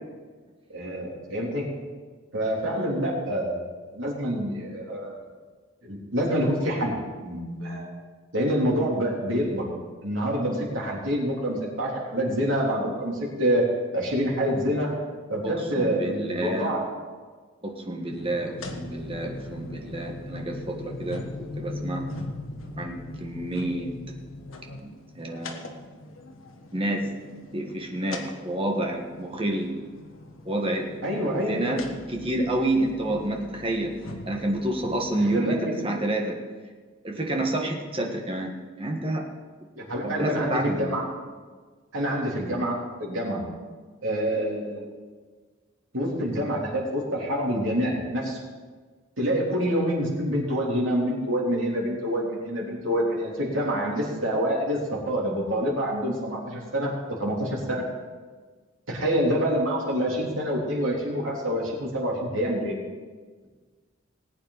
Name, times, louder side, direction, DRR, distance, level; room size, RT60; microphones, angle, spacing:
voice 1, 0.7-1.7 2.3-5.2 5.8-7.9 8.3-9.7 10.0-13.7 13.9-14.9 15.3-16.8 31.0-31.6 35.2-35.7 39.8-41.0 41.9-43.4 44.0-44.8 45.9-48.4 49.2-57.9 58.9-62.8, equal, 80° right, -3 dB, 3.5 m, -27 dB
voice 2, 15.4-16.7 17.6-21.3 21.6-22.0 22.7-23.9 24.8-24.9 25.2-25.7 26.7-27.1 27.5-29.7 30.4-30.9 31.5-31.8 32.1-33.9 34.3-36.4 37.0-38.5 38.8-39.2 40.0-40.7, right 1 dB, 25° right, 1 dB, 1.5 m, -28 dB
sound 1, 18.1-35.0, left 2 dB, 85° left, 1.4 m, -40 dB
19.0 x 8.7 x 4.1 m, 1.5 s
head